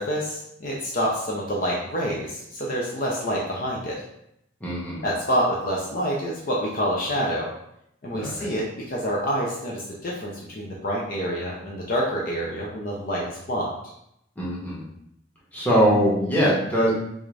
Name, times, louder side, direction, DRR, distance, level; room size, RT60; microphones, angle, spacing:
voice 1, 0.0-4.0 5.0-7.5 8.0-13.9, equal, 45° left, -3 dB, 0.5 m, -27 dB
voice 2, 4.6-5.0 8.1-8.5 14.4-14.9 15.5-16.9, equal, 10° left, -7 dB, 0.9 m, -22 dB
3.5 x 2.5 x 3.2 m, 0.77 s
head